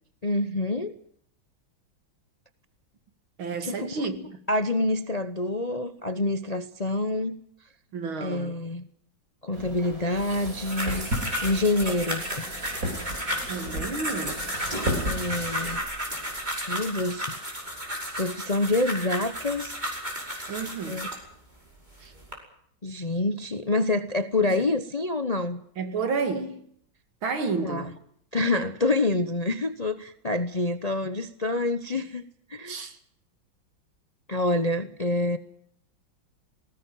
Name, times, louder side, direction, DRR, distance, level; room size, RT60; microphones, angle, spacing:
voice 1, 0.2-1.0 3.6-3.9 4.5-7.4 8.2-8.9 9.4-11.1 11.4-12.2 15.0-15.8 16.7-17.4 18.2-19.7 20.9-21.1 22.8-25.6 27.6-27.9 28.3-32.2 32.5-32.8 34.3-35.4, left 2 dB, 35° left, 0.6 m, -27 dB
voice 2, 3.4-4.4 7.9-8.6 13.5-14.5 20.5-21.1 22.0-22.1 24.4-24.6 25.8-26.7 27.2-28.0 32.7-33.0, right 4 dB, 85° right, 3.0 m, -31 dB
sound 1, 9.5-15.8, equal, 40° right, 5.4 m, -34 dB
sound 2, 10.4-21.2 21.9-22.3, equal, 20° right, 5.6 m, -33 dB
19.5 x 18.0 x 9.3 m
omnidirectional pair, 2.2 m